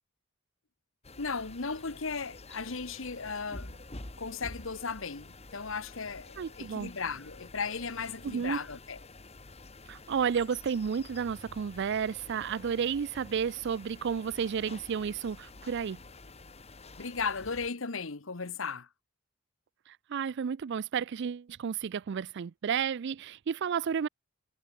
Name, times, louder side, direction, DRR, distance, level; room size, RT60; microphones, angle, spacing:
sound 1, 1.0-17.7, left 2 dB, 30° left, 2.0 m, -49 dB
voice 1, 1.2-3.8 4.2-9.0 17.0-18.9, left 5 dB, 65° left, 1.3 m, -36 dB
voice 2, 6.4-6.9 8.2-8.6 9.9-16.0 20.1-24.1, right 7 dB, 55° right, 0.4 m, -32 dB
head